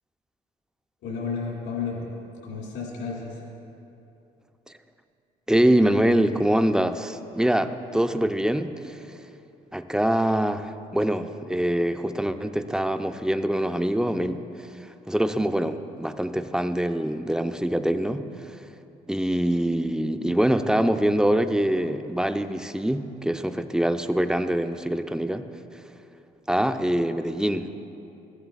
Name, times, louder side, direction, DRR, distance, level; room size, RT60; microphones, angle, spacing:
voice 1, 1.0-2.1 2.4-3.4, left 5 dB, 75° left, -4 dB, 2.1 m, -32 dB
voice 2, 5.5-9.2 9.7-18.6 19.1-25.5 26.5-27.7, right 1 dB, 5° right, 9 dB, 0.5 m, -24 dB
15.0 x 8.0 x 2.4 m, 2.8 s
hypercardioid pair, 55°, 20 cm